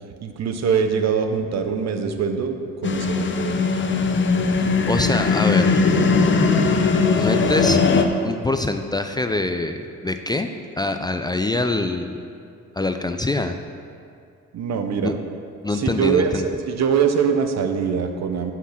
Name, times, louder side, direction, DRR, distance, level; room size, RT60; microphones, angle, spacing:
voice 1, 0.2-3.6 14.5-15.2 15.7-18.5, right 6 dB, 60° right, 6 dB, 1.0 m, -23 dB
sound 1, 2.8-8.1, left 4 dB, 40° left, 0.8 m, -19 dB
voice 2, 4.9-5.8 7.2-7.8 8.2-10.5 10.8-12.2 12.8-13.6 15.0-15.1 15.6-16.5, left 2 dB, 15° left, 7 dB, 0.4 m, -24 dB
10.5 x 6.0 x 5.8 m, 2.4 s
cardioid pair, 90°, 30 cm